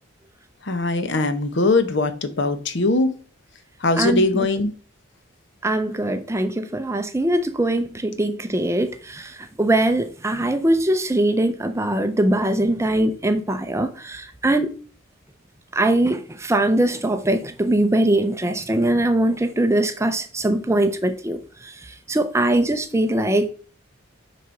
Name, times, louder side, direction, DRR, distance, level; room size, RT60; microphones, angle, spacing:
voice 1, 0.6-3.1 3.8-4.7, left 2 dB, 55° left, 0.9 m, -21 dB
voice 2, 4.0-4.5 5.6-14.7 15.7-21.4 21.6-21.7 22.1-23.5, right 1 dB, 15° right, 0.5 m, -21 dB
6.5 x 5.0 x 4.5 m
head